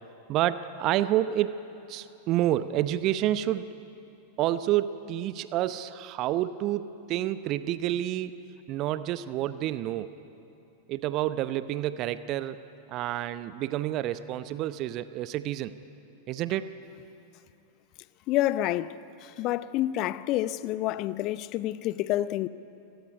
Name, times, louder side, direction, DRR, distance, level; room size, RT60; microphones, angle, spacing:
voice 1, 0.3-1.6 1.9-3.8 4.4-8.3 8.7-10.1 10.9-12.6 12.9-15.7 16.3-16.7, right 13 dB, 40° right, 0.8 m, -29 dB
voice 2, 18.3-22.5, left 14 dB, 40° left, 0.7 m, -28 dB
29.0 x 18.5 x 9.7 m
figure-of-eight pair, 90°, 0 cm